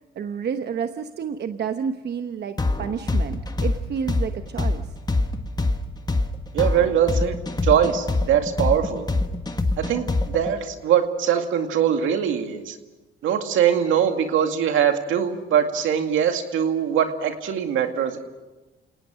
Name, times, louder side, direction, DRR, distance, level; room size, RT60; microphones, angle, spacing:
voice 1, 0.1-4.8, right 7 dB, 55° right, 8 dB, 1.1 m, -30 dB
sound 1, 2.6-10.5, left 2 dB, 20° left, 1.6 m, -24 dB
voice 2, 6.5-7.3 7.6-9.1 9.8-12.8 13.2-18.2, right 8 dB, 85° right, 6 dB, 2.2 m, -22 dB
30.0 x 18.5 x 6.4 m, 1.1 s
cardioid pair, 90°, 20 cm